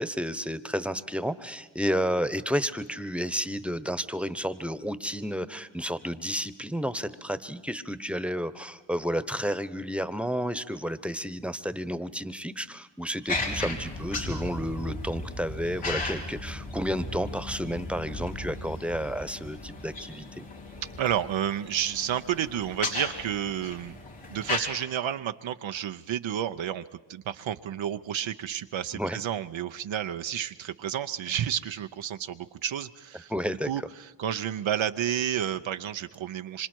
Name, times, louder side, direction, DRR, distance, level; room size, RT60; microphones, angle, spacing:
voice 1, 0.0-20.4 28.9-29.2 33.3-33.7, equal, 5° right, 13 dB, 1.1 m, -31 dB
sound 1, 13.3-24.6, left 2 dB, 85° left, 4.1 m, -36 dB
voice 2, 21.0-24.0 24.3-26.8 27.1-33.3 33.7-36.7, right 10 dB, 75° right, 8 dB, 0.7 m, -31 dB
26.0 x 25.5 x 4.6 m, 1.1 s
cardioid pair, 40°, 46 cm